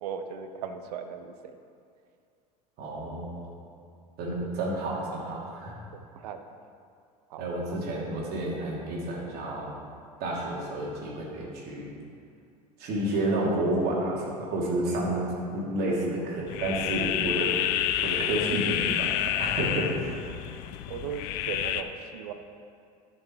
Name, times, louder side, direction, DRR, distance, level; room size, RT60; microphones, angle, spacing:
voice 1, 0.0-1.3 4.2-4.5 6.2-6.4 7.3-7.4 20.9-22.3, right 7 dB, 70° right, 8 dB, 0.9 m, -37 dB
voice 2, 2.8-3.5 4.2-5.8 7.4-9.7 10.2-11.8 12.8-15.3 15.5-17.5 18.0-20.3, right 1 dB, 50° right, -3 dB, 2.8 m, -30 dB
sound 1, 16.5-21.8, left 11 dB, 55° left, 0.6 m, -29 dB
12.5 x 6.6 x 4.6 m, 2.4 s
hypercardioid pair, 75°, 20 cm